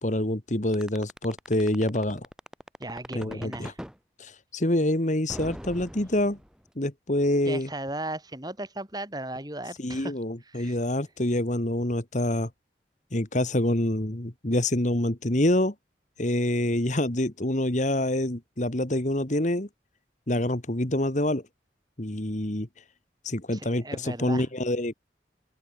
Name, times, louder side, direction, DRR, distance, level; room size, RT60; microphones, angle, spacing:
voice 1, 0.0-2.2 3.1-3.7 4.2-6.4 6.8-7.7 9.8-12.5 13.1-15.7 16.2-19.7 20.3-21.4 22.0-22.7 23.2-24.9, left 1 dB, 45° left, 2.0 m, -26 dB
sound 1, 0.7-4.0 5.3-6.7, equal, 5° right, 4.4 m, -40 dB
voice 2, 2.8-3.8 7.4-10.1 10.4-10.8 23.5-24.5, right 1 dB, 20° right, 6.5 m, -36 dB
open air
head